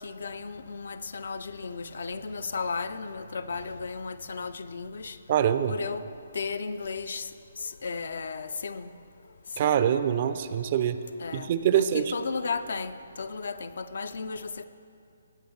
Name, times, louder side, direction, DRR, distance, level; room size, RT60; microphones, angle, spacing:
voice 1, 0.0-5.2 5.7-6.0 6.3-7.3 7.6-8.9 9.6-9.7 11.2-11.5 11.8-14.6, left 4 dB, 55° left, 12 dB, 0.4 m, -34 dB
voice 2, 5.3-5.7 9.6-11.0 11.3-12.1, right 9 dB, 35° right, 11 dB, 0.4 m, -24 dB
17.5 x 8.3 x 3.2 m, 2.5 s
figure-of-eight pair, 135°, 0 cm